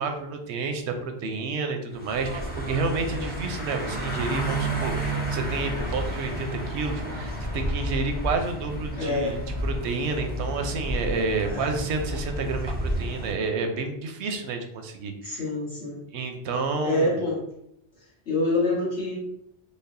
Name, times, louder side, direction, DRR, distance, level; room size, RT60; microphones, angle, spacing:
voice 1, 0.0-15.4 16.1-17.2, right 4 dB, 85° right, 5 dB, 0.9 m, -30 dB
sound 1, 1.9-13.3, right 1 dB, 10° left, 0.6 m, -31 dB
voice 2, 9.0-9.4 11.5-11.8 15.2-16.0 16.8-17.4 18.3-19.2, left 2 dB, 70° left, -9 dB, 2.0 m, -26 dB
5.2 x 2.2 x 2.5 m, 0.78 s
omnidirectional pair, 1.1 m